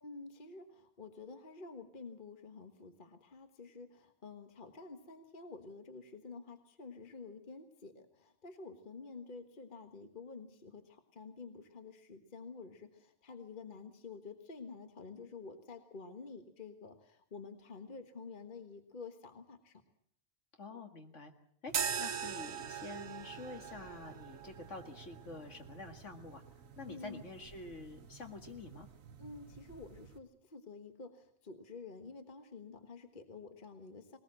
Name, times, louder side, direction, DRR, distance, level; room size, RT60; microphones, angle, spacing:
voice 1, 0.0-19.8 26.9-27.2 29.2-34.2, left 4 dB, 35° left, 7 dB, 1.6 m, -50 dB
voice 2, 20.6-21.3 21.6-26.4 26.8-28.9, left 3 dB, 55° left, 5 dB, 2.3 m, -48 dB
sound 1, 21.7-30.2, right 7 dB, 70° right, 1.5 m, -43 dB
20.5 x 19.5 x 7.6 m, 0.64 s
omnidirectional pair, 1.5 m